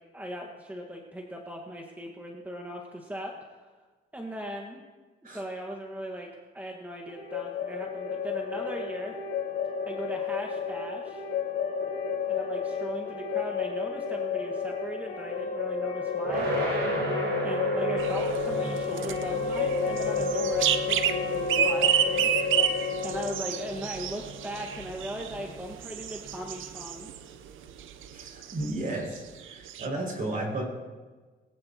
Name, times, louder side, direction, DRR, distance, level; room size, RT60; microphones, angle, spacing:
voice 1, 0.1-3.7 4.1-4.8 5.3-6.3 6.5-9.2 9.8-11.2 12.3-16.4 17.4-22.3 23.0-27.1, equal, 10° right, 0 dB, 1.6 m, -38 dB
sound 1, 7.1-24.8, left 5 dB, 85° left, 3.3 m, -31 dB
sound 2, 16.2-27.2, right 1 dB, 65° right, 5.9 m, -36 dB
sound 3, 18.0-27.3 27.6-28.8 29.2-29.3 29.5-29.9, right 9 dB, 80° right, 0.8 m, -30 dB
voice 2, 28.1-30.6, right 2 dB, 45° right, 0 dB, 5.9 m, -33 dB
20.0 x 18.0 x 3.0 m, 1.3 s
cardioid pair, 90°, 20 cm